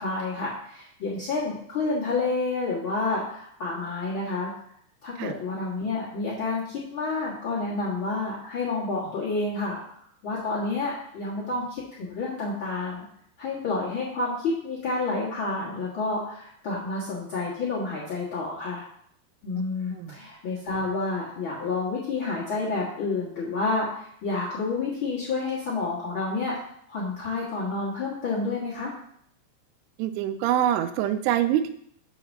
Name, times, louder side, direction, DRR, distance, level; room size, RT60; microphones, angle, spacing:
voice 1, 0.0-4.5 5.0-9.8 10.2-13.0 13.4-18.9 19.4-26.5 26.9-28.9, left 3 dB, 70° left, -8 dB, 1.2 m, -29 dB
voice 2, 30.0-31.7, right 11 dB, 80° right, 10 dB, 2.5 m, -25 dB
6.6 x 3.9 x 6.4 m, 0.67 s
omnidirectional pair, 4.9 m